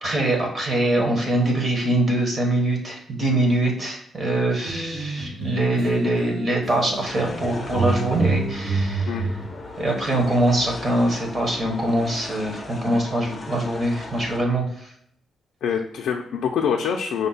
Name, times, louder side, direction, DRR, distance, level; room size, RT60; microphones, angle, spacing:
voice 1, 0.0-9.4 9.8-14.9, right 1 dB, 30° right, 1 dB, 1.0 m, -23 dB
sound 1, 4.5-6.3 6.6-9.4, right 3 dB, 75° right, 1.6 m, -28 dB
sound 2, 7.1-14.4, left 3 dB, 20° left, 0.5 m, -38 dB
voice 2, 15.6-17.3, left 7 dB, 80° left, 1 dB, 0.4 m, -25 dB
5.2 x 2.2 x 3.9 m, 0.71 s
wide cardioid pair, 165°, 0 cm